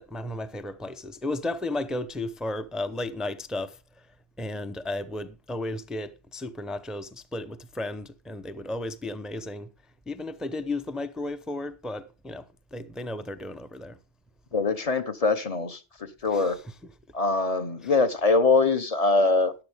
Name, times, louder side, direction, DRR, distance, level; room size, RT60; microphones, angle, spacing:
voice 1, 0.0-4.1 4.4-9.7 10.1-14.0 16.2-17.0 17.8-18.1, left 2 dB, ahead, 0.5 m, -34 dB
voice 2, 14.5-15.8 16.2-16.6 17.1-19.5, left 3 dB, 35° left, 0.8 m, -23 dB
14.0 x 10.5 x 3.5 m
omnidirectional pair, 1.3 m